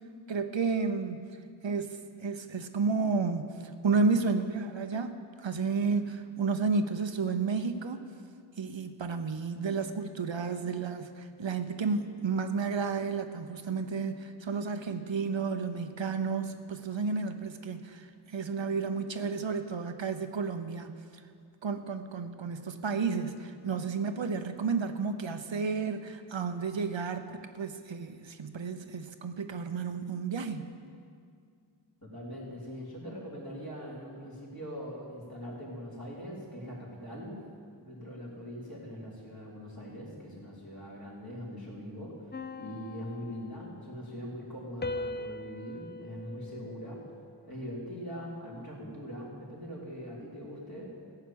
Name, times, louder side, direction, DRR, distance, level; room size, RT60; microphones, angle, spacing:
voice 1, 0.3-1.3 1.6-8.0 8.6-20.9 21.6-30.7, right 4 dB, 80° right, 8 dB, 0.8 m, -32 dB
voice 2, 32.0-37.4 37.8-47.0 47.5-50.9, equal, 55° left, -5 dB, 3.5 m, -42 dB
sound 1, 42.3-44.1 44.8-47.4, left 2 dB, 25° left, 0.5 m, -41 dB
15.0 x 5.8 x 8.6 m, 2.2 s
wide cardioid pair, 45°, 44 cm